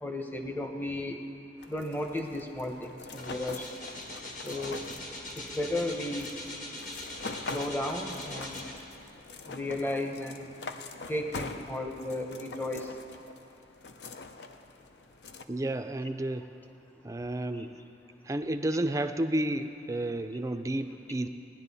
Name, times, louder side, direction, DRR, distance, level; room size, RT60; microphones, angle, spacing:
voice 1, 0.0-1.2 1.7-3.7 4.4-4.8 5.5-6.3 7.5-8.7 9.5-10.5 11.1-12.9, left 1 dB, 10° left, 3 dB, 0.8 m, -34 dB
sound 1, 1.6-15.5, left 3 dB, 75° left, 0.6 m, -44 dB
sound 2, 3.1-9.1 9.7-9.8, left 1 dB, 45° left, 1.6 m, -42 dB
voice 2, 15.5-16.5 17.0-17.8 18.2-21.3, right 1 dB, 20° right, 8 dB, 0.4 m, -31 dB
18.0 x 10.5 x 4.1 m, 2.6 s
head